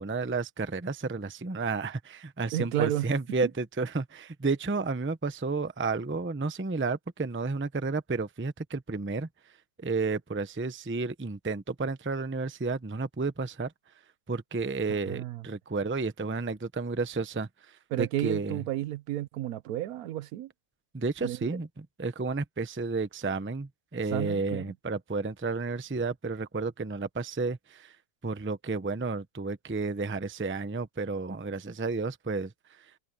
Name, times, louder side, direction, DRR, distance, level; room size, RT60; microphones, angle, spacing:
voice 1, 0.0-9.3 9.8-13.7 14.3-18.6 20.9-28.0 28.2-32.8, right 3 dB, 15° right, 0.5 m, -32 dB
voice 2, 2.5-3.1 15.1-15.4 17.9-20.5 21.2-21.6 24.1-24.7, right 13 dB, 70° right, 1.0 m, -32 dB
omnidirectional pair, 1.7 m